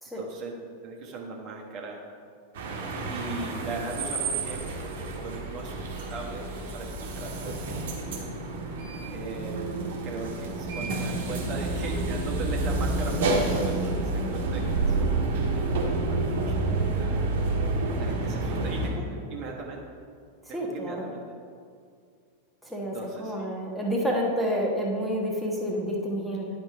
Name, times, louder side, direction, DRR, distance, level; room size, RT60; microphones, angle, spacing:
voice 1, 0.2-2.0 3.1-8.0 9.1-17.2 18.0-19.8 20.5-21.2 22.8-23.5, right 3 dB, 40° right, -1 dB, 1.2 m, -39 dB
sound 1, 2.5-18.9, right 2 dB, 55° right, 1.3 m, -29 dB
voice 2, 20.5-21.0 22.7-26.5, equal, ahead, -2 dB, 1.2 m, -29 dB
10.5 x 4.4 x 4.6 m, 2.2 s
figure-of-eight pair, 90°, 0 cm